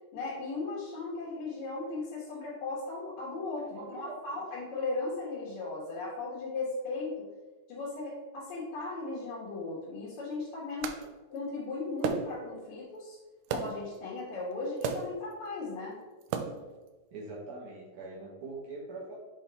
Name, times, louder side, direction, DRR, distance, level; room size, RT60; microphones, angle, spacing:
voice 1, 0.1-7.2 7.7-10.9 11.3-13.2 13.5-16.0, left 3 dB, 60° left, -8 dB, 2.6 m, -37 dB
voice 2, 3.7-4.2 4.5-4.6 17.1-19.1, right 3 dB, 65° right, -6 dB, 2.6 m, -43 dB
sound 1, 10.8-11.0 12.0-12.5 13.5-13.9 14.8-15.2 16.2-16.7, right 6 dB, 80° right, 1.9 m, -34 dB
6.8 x 4.2 x 4.0 m, 1.2 s
omnidirectional pair, 4.0 m